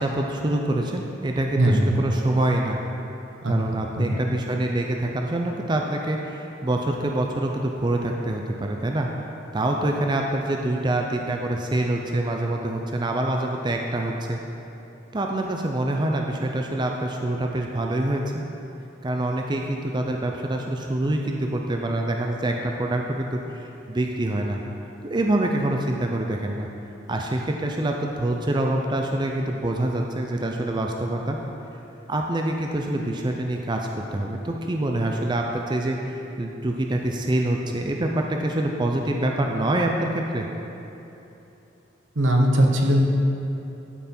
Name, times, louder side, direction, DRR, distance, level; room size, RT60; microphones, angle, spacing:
voice 1, 0.0-2.8 3.5-9.1 9.5-14.4 15.1-18.2 19.0-24.6 25.0-26.7 27.1-31.4 32.1-40.5, right 1 dB, 25° right, 1 dB, 0.5 m, -25 dB
voice 2, 1.6-1.9 3.4-3.5 4.0-4.2 42.1-43.0, equal, 80° right, 1 dB, 1.1 m, -19 dB
12.0 x 5.8 x 4.3 m, 3.0 s
head